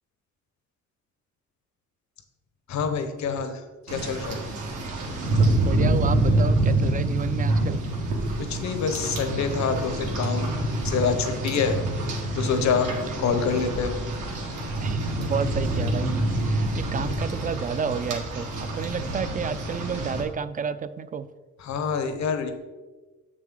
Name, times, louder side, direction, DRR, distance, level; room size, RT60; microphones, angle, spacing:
voice 1, 2.7-4.4 8.4-10.6 10.8-11.8 12.3-13.9 21.6-22.5, left 6 dB, 65° left, 7 dB, 1.0 m, -26 dB
Rain, 3.9-20.2, right 1 dB, 85° right, 1.8 m, -26 dB
voice 2, 5.3-7.8 14.8-21.3, right 6 dB, 30° right, 14 dB, 0.4 m, -31 dB
7.1 x 6.2 x 3.8 m, 1.2 s
cardioid pair, 90°, 30 cm